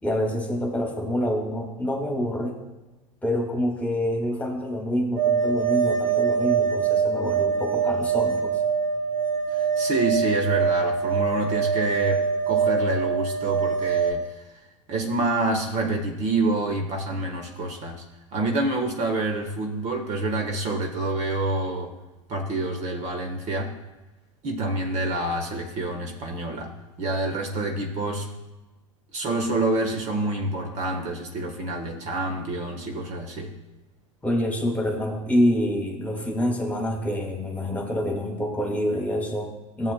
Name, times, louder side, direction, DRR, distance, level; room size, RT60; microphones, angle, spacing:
voice 1, 0.0-2.6 3.2-8.6 34.2-39.9, equal, 10° left, 1 dB, 1.7 m, -26 dB
sound 1, 5.2-14.1, right 6 dB, 85° right, 1.3 m, -24 dB
voice 2, 9.5-14.3 14.9-18.0 18.3-21.9 22.3-23.7 24.4-26.7 27.0-28.3 29.1-33.6, right 2 dB, 40° right, 2 dB, 1.2 m, -27 dB
14.5 x 7.4 x 2.2 m, 1.1 s
hypercardioid pair, 100°, 17 cm